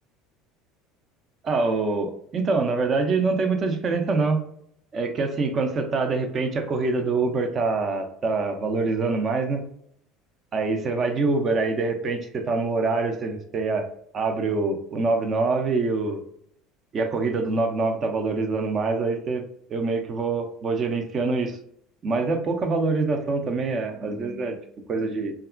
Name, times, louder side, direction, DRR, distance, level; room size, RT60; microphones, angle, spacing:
voice 1, 1.4-4.4 4.9-9.6 10.5-13.9 14.1-16.2 16.9-19.4 19.7-21.6 22.0-24.6 24.9-25.3, right 3 dB, 40° right, 6 dB, 0.5 m, -25 dB
2.7 x 2.4 x 2.4 m, 0.70 s
hypercardioid pair, 70°, 0 cm